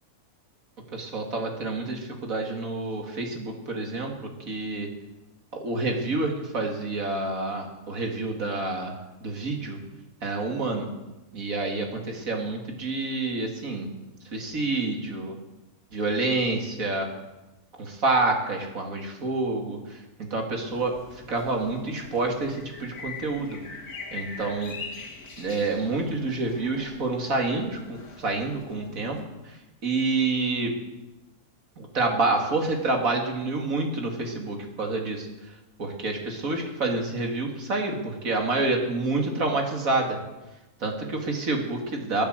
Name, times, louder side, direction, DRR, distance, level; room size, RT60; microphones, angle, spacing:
voice 1, 0.9-4.9 5.5-9.8 10.2-10.9 11.3-13.9 14.3-15.4 15.9-17.1 17.8-23.6 24.1-24.7 25.4-29.2 29.4-30.7 31.8-35.3 35.8-40.2 40.8-42.2, right 3 dB, 65° right, 2 dB, 2.8 m, -28 dB
sound 1, 20.7-29.2, left 4 dB, 80° left, 2.2 m, -43 dB
22.5 x 8.7 x 6.5 m, 1.0 s
omnidirectional pair, 1.6 m